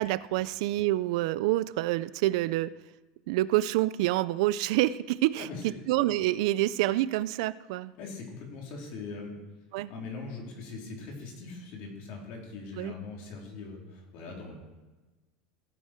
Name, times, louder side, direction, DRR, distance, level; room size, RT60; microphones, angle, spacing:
voice 1, 0.0-2.7 3.3-7.9 9.7-9.9 12.8-12.9, right 16 dB, 70° right, 17 dB, 0.4 m, -27 dB
voice 2, 5.4-5.8 8.0-9.4 9.9-14.6, left 4 dB, 55° left, -1 dB, 3.7 m, -41 dB
16.0 x 9.3 x 4.5 m, 1.2 s
supercardioid pair, 155°, 3 cm